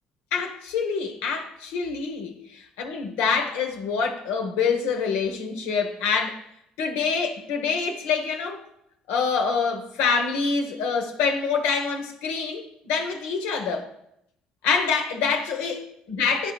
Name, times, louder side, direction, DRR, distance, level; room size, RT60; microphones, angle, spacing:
voice 1, 0.3-2.4 2.8-6.4 6.8-8.6 9.1-13.9 14.6-15.8 16.1-16.5, left 5 dB, 85° left, 1.0 m, -26 dB
13.0 x 4.5 x 2.3 m
supercardioid pair, 60°, 3 cm